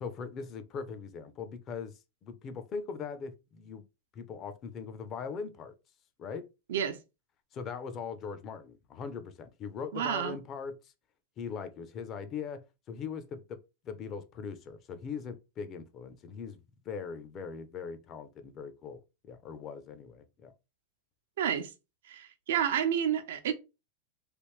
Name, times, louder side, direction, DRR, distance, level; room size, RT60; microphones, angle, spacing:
voice 1, 0.0-3.8 4.1-5.7 6.2-6.5 7.5-10.9 11.4-13.6 13.8-20.5, left 6 dB, 35° left, 0.6 m, -40 dB
voice 2, 9.9-10.4 21.4-21.7 22.0-23.5, right 9 dB, 85° right, 0.7 m, -30 dB
3.3 x 2.5 x 3.1 m
supercardioid pair, 135°, 0 cm